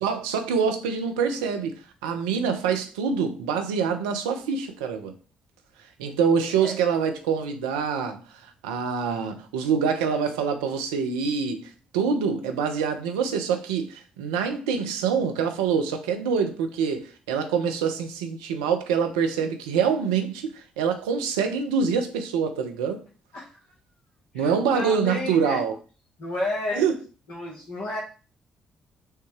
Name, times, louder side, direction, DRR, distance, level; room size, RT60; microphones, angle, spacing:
voice 1, 0.0-5.1 6.0-8.2 8.6-23.0 24.3-25.7 26.8-27.0, right 6 dB, 75° right, 0.5 m, -25 dB
voice 2, 24.3-25.6 26.2-26.8 27.3-28.0, left 2 dB, 50° left, 1.1 m, -31 dB
6.4 x 2.2 x 3.0 m
figure-of-eight pair, 40°, 3 cm